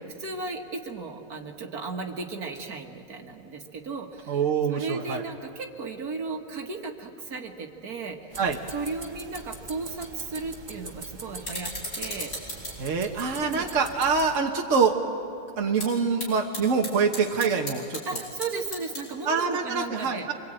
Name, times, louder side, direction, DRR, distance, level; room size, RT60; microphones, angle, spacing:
voice 1, 0.2-4.4 4.7-8.4 8.7-12.3 13.4-13.7 18.1-20.3, right 4 dB, 70° right, 3 dB, 2.2 m, -35 dB
voice 2, 4.3-5.2 8.4-8.6 12.8-15.0 15.6-18.0 19.2-20.3, right 5 dB, 55° right, 2 dB, 1.5 m, -25 dB
sound 1, 8.3-14.4, right 3 dB, 30° right, 1.6 m, -43 dB
sound 2, 10.2-19.4, left 1 dB, 75° left, 7.6 m, -40 dB
25.5 x 24.0 x 9.0 m, 2.6 s
omnidirectional pair, 1.7 m